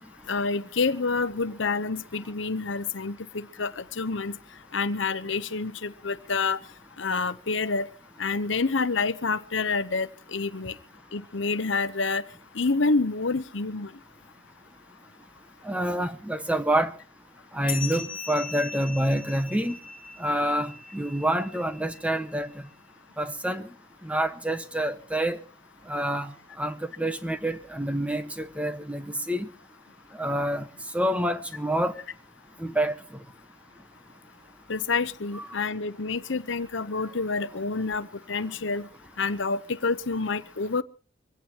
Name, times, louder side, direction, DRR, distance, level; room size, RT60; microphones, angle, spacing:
voice 1, 0.3-4.4 4.7-6.6 7.0-7.9 8.2-10.7 11.1-12.2 12.5-13.9 34.7-38.9 39.2-40.8, left 4 dB, 70° left, 0.9 m, -28 dB
voice 2, 15.6-16.9 17.5-19.8 20.2-22.5 23.2-23.7 24.0-25.4 25.9-26.3 26.6-29.5 30.2-30.7 30.9-31.9 32.6-32.9 35.3-35.5, right 1 dB, 5° right, 1.3 m, -27 dB
sound 1, 17.7-22.5, left 5 dB, 25° left, 3.2 m, -40 dB
24.5 x 17.0 x 3.0 m
head